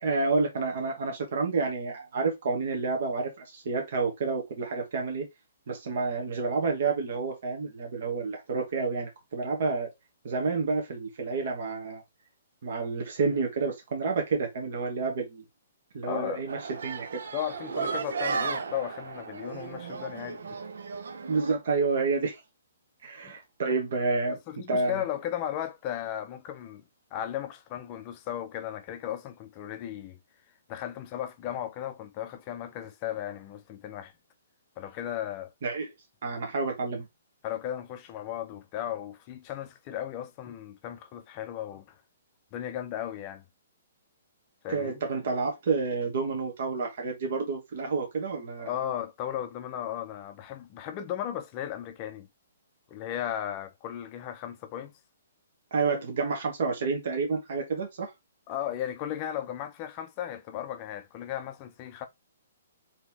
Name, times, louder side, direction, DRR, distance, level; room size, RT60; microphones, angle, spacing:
voice 1, 0.0-5.3 5.7-9.9 10.2-12.0 12.6-15.4 15.9-17.2 21.3-22.4 23.0-24.4 24.7-25.0 35.6-35.9 36.2-37.1 44.7-48.7 55.7-58.1, right 4 dB, 50° right, 1.1 m, -29 dB
voice 2, 16.0-16.4 17.3-20.6 23.2-23.3 24.5-26.8 27.1-30.2 30.7-34.1 34.8-35.5 37.4-42.0 42.5-43.4 44.6-45.0 48.6-52.3 52.9-54.9 58.5-62.1, left 11 dB, 25° left, 0.5 m, -36 dB
sound 1, 16.5-21.5, right 5 dB, 75° right, 0.7 m, -34 dB
4.0 x 2.9 x 3.4 m
hypercardioid pair, 170°, 0 cm